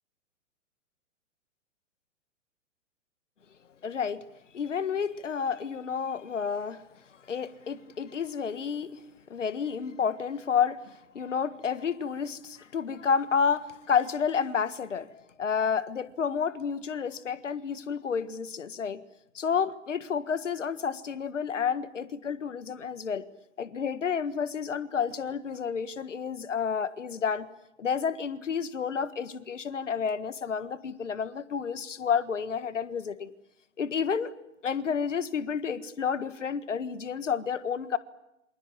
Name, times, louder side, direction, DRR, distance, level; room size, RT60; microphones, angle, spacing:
voice 1, 3.8-4.2 4.5-6.8 7.3-9.0 9.3-19.0 19.3-23.3 23.6-27.5 27.8-33.3 33.8-34.3 34.6-38.0, left 6 dB, 70° left, 14 dB, 1.7 m, -30 dB
28.0 x 26.0 x 7.3 m, 0.85 s
figure-of-eight pair, 110°, 38 cm